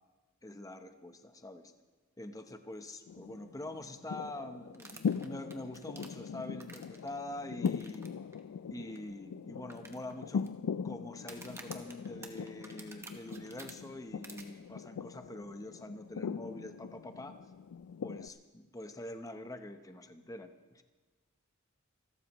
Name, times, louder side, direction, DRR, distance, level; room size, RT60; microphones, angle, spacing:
voice 1, 0.4-1.7 2.2-8.1 8.7-10.5 10.8-17.4 18.0-20.8, left 1 dB, 15° left, 7 dB, 0.8 m, -45 dB
sound 1, 3.1-18.3, left 6 dB, 85° left, 0.4 m, -40 dB
sound 2, 4.7-7.1 7.7-8.1 8.3-8.4 9.0-9.1 9.7-10.5 11.2-13.7 14.2-14.4, right 3 dB, 15° right, 1.2 m, -50 dB
27.5 x 13.0 x 3.0 m, 1.3 s
head